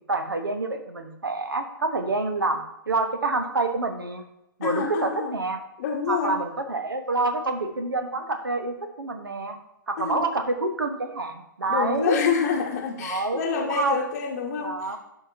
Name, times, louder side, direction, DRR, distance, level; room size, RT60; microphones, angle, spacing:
voice 1, 0.1-4.2 4.6-5.6 6.1-9.6 9.9-12.2 13.0-14.1 14.6-15.0, right 2 dB, 80° right, 7 dB, 1.1 m, -27 dB
voice 2, 4.6-5.4 5.8-6.4 10.0-10.2 11.7-15.0, left 6 dB, 45° left, 2 dB, 0.9 m, -27 dB
12.0 x 5.0 x 2.7 m, 0.83 s
figure-of-eight pair, 120°, 11 cm